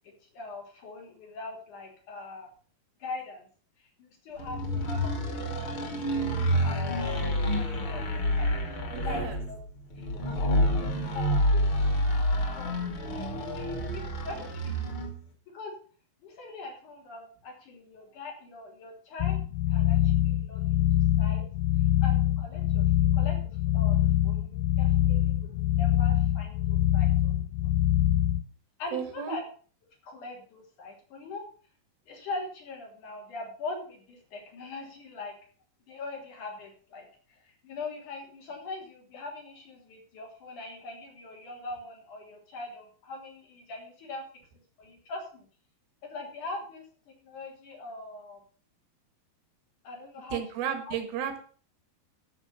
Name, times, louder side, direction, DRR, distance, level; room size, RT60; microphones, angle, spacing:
voice 1, 0.0-2.5 3.0-3.5 4.0-9.6 10.0-11.6 12.4-13.3 13.5-14.7 15.5-15.7 16.2-19.4 19.7-20.8 21.2-21.4 22.0-23.4 23.7-24.0 24.2-27.7 28.8-29.4 30.0-31.4 32.1-35.3 35.9-44.2 44.8-45.5 46.0-48.4 49.8-50.4 50.8-51.0, left 3 dB, 55° left, 1 dB, 4.6 m, -42 dB
sound 1, 4.4-15.2, equal, 35° left, 3.1 m, -28 dB
voice 2, 8.9-9.4 28.9-29.4 50.3-51.4, right 9 dB, 85° right, 7 dB, 3.6 m, -33 dB
sound 2, 19.2-28.4, left 13 dB, 75° left, 2.0 m, -24 dB
13.0 x 6.6 x 6.9 m, 0.43 s
omnidirectional pair, 4.2 m